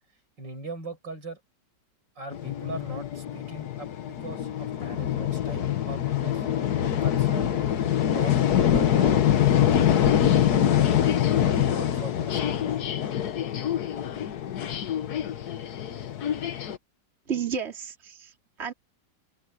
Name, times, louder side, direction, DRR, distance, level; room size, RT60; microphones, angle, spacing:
voice 1, 0.4-1.4 2.2-6.5 7.0-7.7 8.0-9.2 9.9-10.3 11.7-12.5, right 3 dB, 85° right, 8.1 m, -40 dB
sound 1, 2.3-16.8, left 10 dB, 65° left, 1.5 m, -24 dB
voice 2, 17.3-18.7, right 7 dB, 35° right, 2.9 m, -32 dB
open air
omnidirectional pair, 1.9 m